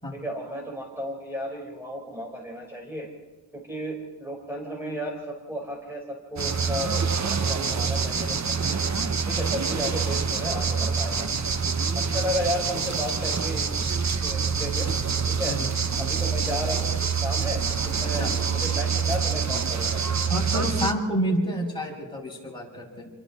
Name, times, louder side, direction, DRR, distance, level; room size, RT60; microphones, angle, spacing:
voice 1, 0.1-3.1 3.5-8.8 9.2-11.3 11.9-13.7 14.2-14.9 15.3-15.6 16.0-20.0 20.5-20.6, equal, 5° right, -2 dB, 4.4 m, -33 dB
sound 1, 6.4-20.9, right 5 dB, 35° right, 1.0 m, -26 dB
voice 2, 18.0-18.3 20.3-23.1, equal, 10° left, -2 dB, 5.9 m, -29 dB
28.0 x 23.5 x 4.2 m, 1.3 s
wide cardioid pair, 110°, 45 cm